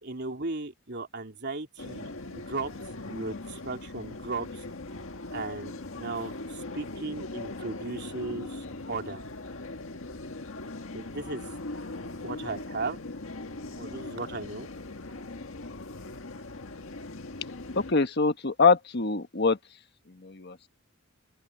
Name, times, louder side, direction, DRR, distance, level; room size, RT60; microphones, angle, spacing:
voice 1, 0.0-2.7 3.1-4.6 5.3-9.2 10.9-11.4 12.2-13.0 13.8-14.7, right 3 dB, 50° right, 3.2 m, -36 dB
sound 1, 1.8-17.9, left 2 dB, 70° left, 1.8 m, -40 dB
voice 2, 17.8-19.6 20.1-20.7, left 4 dB, 50° left, 1.3 m, -24 dB
open air
head